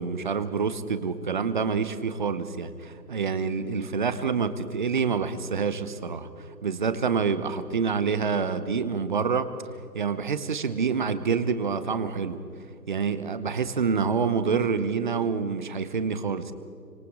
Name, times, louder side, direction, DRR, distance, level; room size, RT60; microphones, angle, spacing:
voice 1, 0.0-6.3 6.6-9.5 9.9-12.4 12.9-16.5, right 5 dB, 30° right, 12 dB, 1.0 m, -27 dB
27.0 x 25.5 x 3.8 m, 2.7 s
figure-of-eight pair, 150°, 50 cm